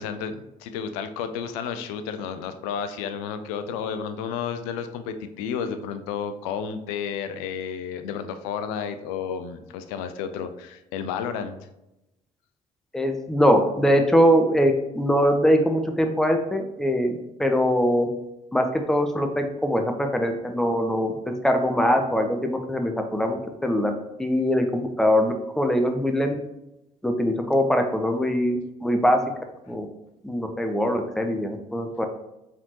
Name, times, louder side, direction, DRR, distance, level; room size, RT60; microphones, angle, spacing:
voice 1, 0.0-11.6, left 7 dB, 75° left, 10 dB, 0.5 m, -32 dB
voice 2, 12.9-18.1 18.5-23.9 24.2-26.3 27.0-29.2 29.7-29.9 30.2-32.1, equal, ahead, 5 dB, 0.7 m, -22 dB
4.8 x 3.6 x 2.9 m, 0.91 s
hypercardioid pair, 55°, 19 cm